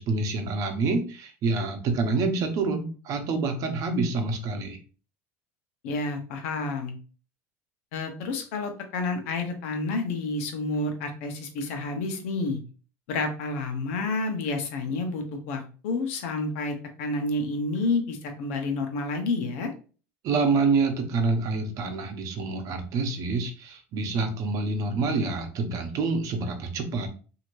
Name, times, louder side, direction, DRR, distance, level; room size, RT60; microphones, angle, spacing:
voice 1, 0.0-4.8 20.2-27.1, right 3 dB, 50° right, 6 dB, 0.8 m, -27 dB
voice 2, 5.8-6.9 7.9-12.6 13.1-19.7, left 3 dB, 75° left, 5 dB, 0.8 m, -29 dB
3.0 x 2.8 x 2.6 m, 0.37 s
supercardioid pair, 105°, 7 cm